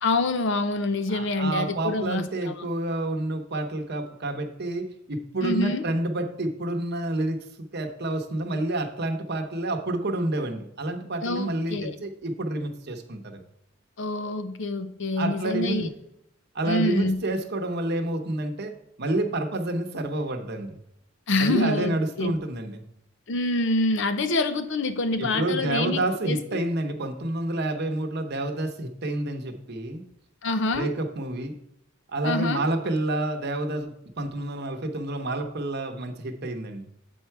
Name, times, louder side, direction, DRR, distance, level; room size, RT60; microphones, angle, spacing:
voice 1, 0.0-2.7 5.4-5.8 11.2-11.9 14.0-15.9 16.6-17.2 21.3-22.4 23.3-26.4 30.4-30.9 32.2-32.6, left 2 dB, 65° left, 10 dB, 0.7 m, -26 dB
voice 2, 1.1-13.4 15.2-15.9 16.5-20.8 21.4-22.8 25.2-30.0 30.7-31.5 32.1-36.9, right 1 dB, 55° right, 5 dB, 0.9 m, -29 dB
8.1 x 4.6 x 4.6 m, 0.77 s
head